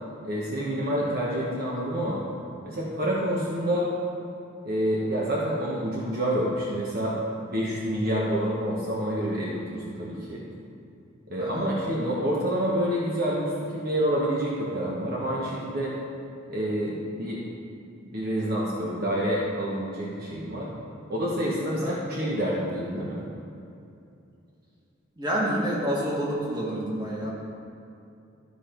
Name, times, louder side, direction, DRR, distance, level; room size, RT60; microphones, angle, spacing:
voice 1, 0.2-2.2 2.6-3.9 4.6-10.4 11.3-15.9 16.5-17.4 18.1-20.7 21.1-23.2, equal, 50° right, -5 dB, 1.0 m, -28 dB
voice 2, 11.4-11.7 21.7-22.0 25.2-27.3, equal, 20° right, -5 dB, 1.8 m, -29 dB
12.5 x 5.1 x 4.4 m, 2.6 s
head